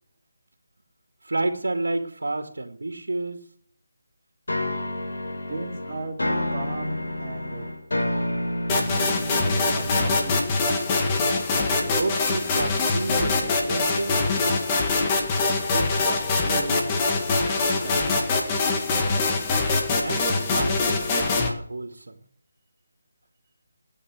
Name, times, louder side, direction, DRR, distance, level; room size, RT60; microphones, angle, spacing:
voice 1, 1.2-3.4 11.8-14.3 20.0-22.2, right 2 dB, 80° right, 4 dB, 2.4 m, -30 dB
sound 1, 4.5-11.3, left 1 dB, 80° left, 6.1 m, -30 dB
voice 2, 5.5-6.2 6.5-7.7 9.3-10.4 15.6-18.4, right 3 dB, 30° right, -2 dB, 4.3 m, -36 dB
sound 2, 8.7-21.5, left 3 dB, 20° left, 2.1 m, -23 dB
19.5 x 9.6 x 6.6 m, 0.63 s
figure-of-eight pair, 165°, 0 cm